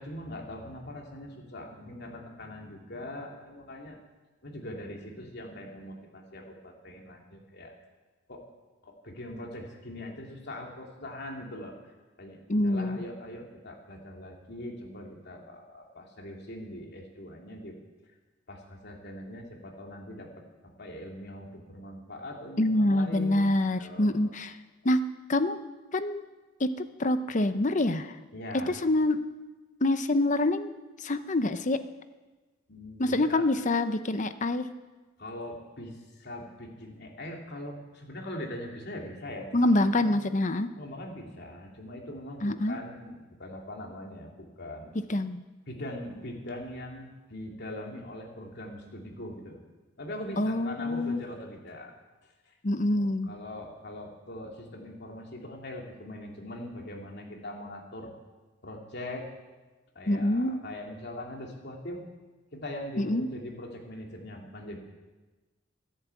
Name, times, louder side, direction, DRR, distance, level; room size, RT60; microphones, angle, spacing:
voice 1, 0.0-4.0 4.4-7.7 8.3-8.5 8.8-17.8 18.5-24.4 28.3-28.7 32.7-33.5 35.2-40.2 40.8-44.9 45.7-49.6 50.0-51.9 52.2-52.5 52.9-58.1 58.6-59.3 59.9-62.0 62.5-64.8, left 1 dB, 55° left, 0 dB, 2.9 m, -42 dB
voice 2, 12.5-13.0 22.6-24.6 24.8-25.0 25.3-25.6 25.9-26.2 26.6-28.2 28.7-29.3 29.8-30.7 31.0-31.8 33.0-34.7 39.5-40.7 42.4-42.8 45.1-45.4 50.4-51.2 52.6-53.3 60.1-60.6 63.0-63.3, left 1 dB, 40° left, 11 dB, 0.7 m, -26 dB
14.5 x 10.5 x 8.4 m, 1.2 s
head